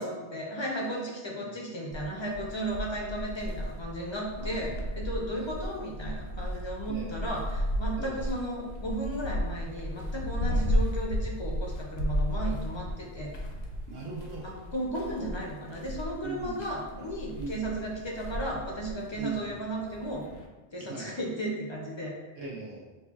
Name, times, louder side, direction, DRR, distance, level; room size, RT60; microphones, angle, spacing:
voice 1, 0.0-13.3 14.4-20.2 20.7-22.1, right 1 dB, 45° left, -2 dB, 0.3 m, -35 dB
sound 1, 1.9-20.5, equal, 80° left, 0.8 m, -34 dB
voice 2, 4.4-4.9 5.3-5.5 6.9-7.2 8.0-8.3 10.5-10.6 13.9-14.5 16.2-16.7 17.3-17.7 19.2-19.5 20.8-21.2 22.4-22.9, right 3 dB, 70° right, -3 dB, 0.8 m, -40 dB
5.2 x 2.2 x 2.3 m, 1.2 s
omnidirectional pair, 1.1 m